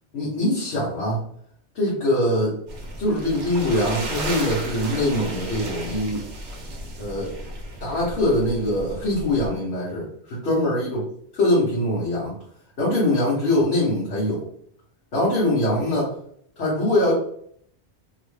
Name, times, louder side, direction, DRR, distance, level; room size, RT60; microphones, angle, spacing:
voice 1, 0.1-1.2 1.7-2.6 3.0-6.2 7.0-7.3 7.8-11.0 11.3-12.4 12.8-14.5 15.1-16.1 16.6-17.1, left 1 dB, 65° left, -7 dB, 1.2 m, -23 dB
sound 1, 2.7-9.5, right 1 dB, 75° right, 1.0 m, -34 dB
3.0 x 2.1 x 3.1 m, 0.64 s
omnidirectional pair, 1.2 m